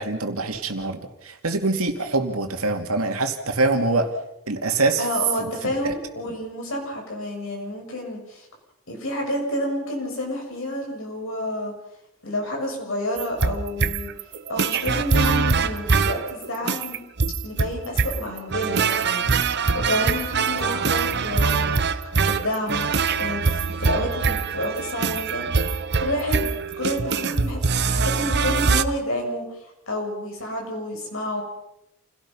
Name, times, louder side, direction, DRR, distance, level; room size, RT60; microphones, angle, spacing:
voice 1, 0.0-4.1 4.5-5.0 5.4-5.9, right 2 dB, 80° right, 5 dB, 2.5 m, -24 dB
voice 2, 5.0-8.5 8.9-11.7 12.2-14.1 14.5-17.0 17.4-19.3 19.7-22.0 22.3-22.8 23.2-25.5 26.0-26.5 26.8-31.4, left 1 dB, 65° left, 1 dB, 7.3 m, -29 dB
sound 1, 13.2-28.8, right 5 dB, 50° right, 0.9 m, -23 dB
28.5 x 17.5 x 5.6 m, 0.83 s
head